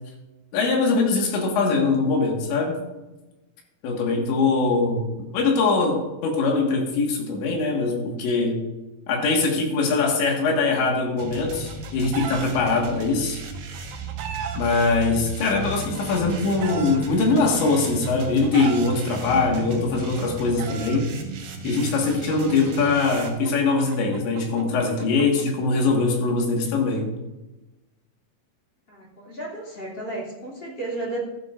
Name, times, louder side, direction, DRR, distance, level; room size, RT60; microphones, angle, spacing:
voice 1, 0.5-2.8 3.8-5.1 5.3-8.6 9.1-13.4 14.6-21.1 21.6-27.1, left 3 dB, 85° left, 1 dB, 4.1 m, -22 dB
sound 1, 11.2-23.3, right 3 dB, 60° right, 2.6 m, -35 dB
Chicken rooster, 11.3-12.5 13.5-14.6 15.6-17.0 17.9-18.9 19.9-21.0 22.1-25.4, right 7 dB, 80° right, 3.1 m, -36 dB
Bowed string instrument, 15.3-19.9, left 2 dB, 55° left, 3.9 m, -39 dB
voice 2, 19.1-19.9 28.9-31.2, right 1 dB, 30° left, -4 dB, 3.0 m, -35 dB
14.5 x 12.0 x 2.6 m, 1.1 s
omnidirectional pair, 5.0 m